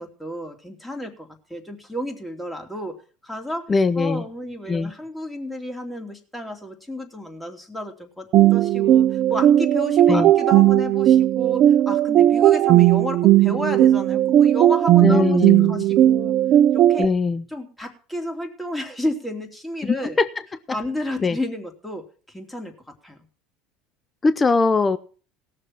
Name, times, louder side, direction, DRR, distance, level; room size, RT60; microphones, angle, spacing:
voice 1, 0.0-3.0 3.2-3.7 4.0-16.4 16.7-17.1 17.5-20.2 20.7-22.7 23.0-23.2, left 1 dB, 5° left, 3 dB, 3.0 m, -32 dB
voice 2, 3.7-4.2 4.7-4.9 10.1-10.3 15.0-15.8 17.0-17.4 19.8-20.3 21.2-21.4 24.2-25.0, left 4 dB, 25° left, 13 dB, 0.7 m, -20 dB
sound 1, 8.3-17.0, right 12 dB, 50° right, 0.5 m, -16 dB
17.5 x 6.8 x 6.0 m, 0.39 s
hypercardioid pair, 80°, 0 cm